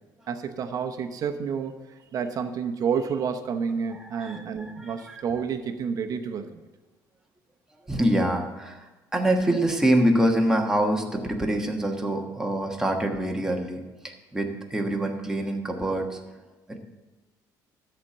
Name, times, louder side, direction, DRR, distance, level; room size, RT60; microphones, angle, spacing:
voice 1, 0.3-1.7 2.1-6.6, right 6 dB, 50° right, 6 dB, 0.9 m, -29 dB
voice 2, 3.9-5.2 7.8-16.2 16.7-16.8, right 1 dB, 5° right, 1 dB, 1.3 m, -25 dB
13.0 x 4.4 x 7.4 m, 1.2 s
cardioid pair, 140°, 8 cm